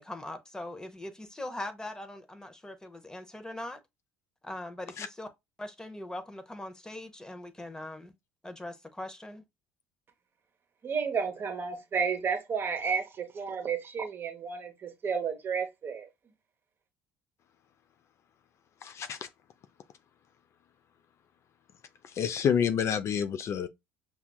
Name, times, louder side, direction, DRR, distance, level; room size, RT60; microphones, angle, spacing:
voice 1, 0.0-3.8 4.4-5.3 5.6-8.1 8.4-9.4, left 1 dB, 10° left, 0.7 m, -41 dB
voice 2, 10.8-16.1, right 6 dB, 40° right, 1.0 m, -32 dB
voice 3, 18.8-19.3 22.1-23.7, left 8 dB, 45° left, 0.4 m, -28 dB
5.7 x 2.4 x 2.3 m
hypercardioid pair, 75°, 6 cm